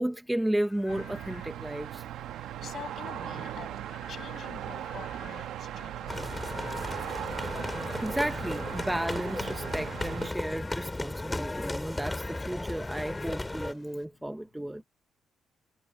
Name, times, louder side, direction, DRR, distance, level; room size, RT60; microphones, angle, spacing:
voice 1, 0.0-2.0 8.0-14.8, right 1 dB, 5° right, 0.8 m, -33 dB
Frog / Rain, 0.6-14.1, left 5 dB, 35° left, 2.4 m, -52 dB
sound 1, 0.9-10.3, right 11 dB, 80° right, 1.0 m, -38 dB
voice 2, 2.6-3.8 4.1-6.7 7.0-7.1, left 8 dB, 50° left, 7.8 m, -46 dB
sound 2, 6.1-13.7, left 2 dB, 10° left, 2.8 m, -35 dB
cardioid pair, 140°, 0 cm